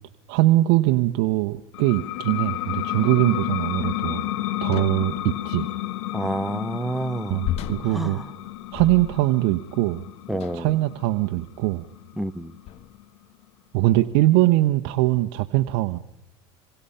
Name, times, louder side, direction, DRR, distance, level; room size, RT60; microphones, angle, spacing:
voice 1, 0.3-4.3 4.6-5.7 7.3-8.2 8.7-10.1 10.5-11.8 13.7-16.0, right 17 dB, 65° right, 9 dB, 1.1 m, -22 dB
sound 1, 1.7-13.0, left 15 dB, 80° left, 1.4 m, -31 dB
sound 2, 4.7-5.2 7.4-9.4 10.3-10.8 11.6-11.8 12.7-13.1, left 11 dB, 45° left, 1.1 m, -34 dB
voice 2, 6.1-7.4 7.9-8.2 10.3-10.7 12.2-12.5, right 1 dB, ahead, 11 dB, 1.0 m, -28 dB
27.5 x 24.0 x 5.7 m, 0.78 s
supercardioid pair, 115°, 14 cm